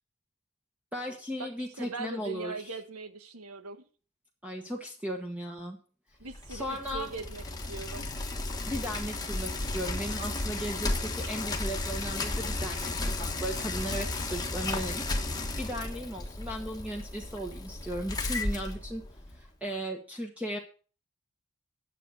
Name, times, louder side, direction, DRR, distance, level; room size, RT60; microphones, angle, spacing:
voice 1, 0.9-2.7 4.4-5.8 6.5-7.1 8.7-19.0 19.4-20.6, equal, 5° right, 1 dB, 1.2 m, -36 dB
voice 2, 1.8-3.9 6.2-8.1, right 3 dB, 90° right, 9 dB, 1.5 m, -40 dB
Bicycle, 6.3-19.5, left 2 dB, 15° left, 1.2 m, -34 dB
11.0 x 7.8 x 6.4 m, 0.38 s
head